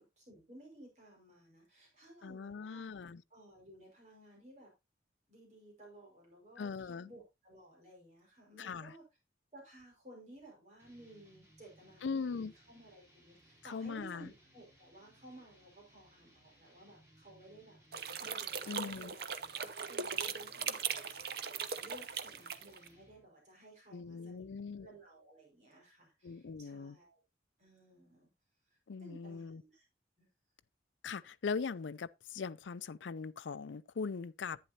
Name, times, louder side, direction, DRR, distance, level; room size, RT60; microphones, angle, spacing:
voice 1, 0.0-2.9 3.3-4.7 5.3-9.0 9.5-17.8 18.2-24.5 24.8-27.2 27.6-28.3 29.0-29.8 30.2-30.3, right 1 dB, 40° right, 5.2 m, -57 dB
voice 2, 2.2-3.2 6.6-7.1 8.6-8.9 12.0-12.5 13.6-14.3 18.7-19.2 23.9-24.9 26.2-27.0 28.9-29.6 31.0-34.6, left 5 dB, 80° left, 0.5 m, -40 dB
sound 1, 10.8-23.3, right 1 dB, 15° right, 4.8 m, -65 dB
sound 2, 17.9-22.9, right 7 dB, 55° right, 0.7 m, -39 dB
11.0 x 9.5 x 2.8 m
head